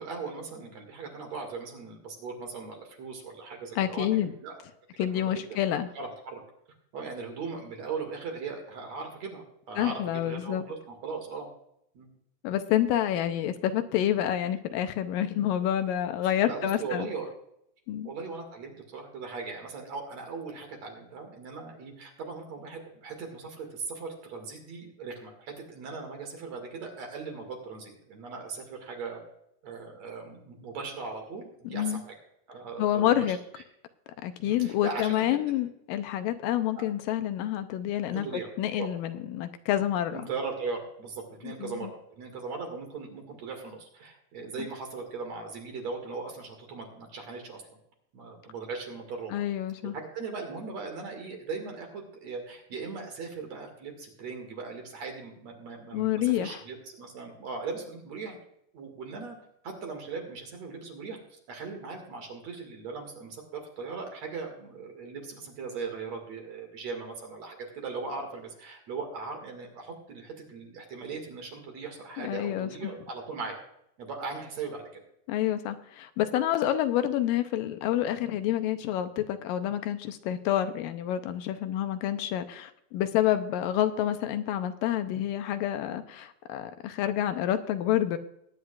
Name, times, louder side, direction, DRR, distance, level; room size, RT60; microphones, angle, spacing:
voice 1, 0.0-4.6 5.1-5.3 5.9-6.4 6.9-11.5 11.9-12.1 16.5-17.3 18.0-29.2 29.6-32.1 32.5-33.4 34.4-35.4 38.0-38.5 38.8-38.9 40.1-41.9 42.2-47.8 48.1-49.4 49.8-58.4 58.7-59.4 59.6-61.2 61.5-73.6 74.0-75.0, right 4 dB, 55° right, 3 dB, 3.0 m, -39 dB
voice 2, 3.8-4.4 5.0-5.9 9.8-10.6 12.4-17.1 17.9-18.1 31.6-32.0 32.8-33.4 34.2-40.2 41.4-41.9 44.6-44.7 49.3-49.9 55.9-56.6 72.2-72.9 75.3-88.2, left 11 dB, 85° left, 9 dB, 2.4 m, -28 dB
20.5 x 9.7 x 2.4 m, 0.76 s
omnidirectional pair, 4.0 m